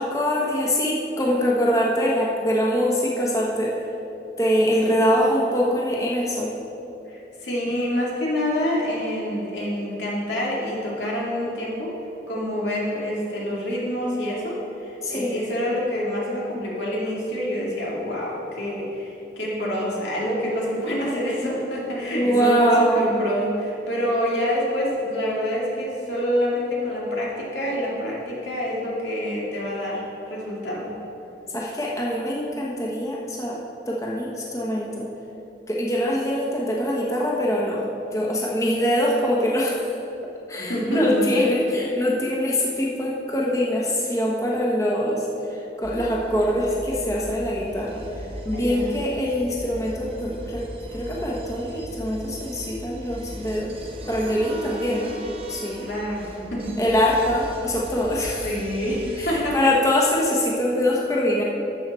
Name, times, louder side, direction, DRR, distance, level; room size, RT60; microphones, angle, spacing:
voice 1, 0.0-3.8 4.4-6.5 15.0-15.3 22.1-23.2 31.5-33.6 33.9-35.1 35.7-37.8 38.1-40.0 40.5-50.6 50.9-55.2 55.5-55.9 56.8-58.5 59.2-61.4, equal, 20° left, -4 dB, 1.1 m, -23 dB
voice 2, 7.1-11.9 12.3-30.9 40.5-41.4 48.5-48.9 55.8-56.8 58.4-59.7, equal, 90° left, -4 dB, 2.5 m, -27 dB
sound 1, 45.8-59.3, right 1 dB, 35° right, 1.0 m, -38 dB
12.0 x 7.4 x 4.3 m, 3.0 s
head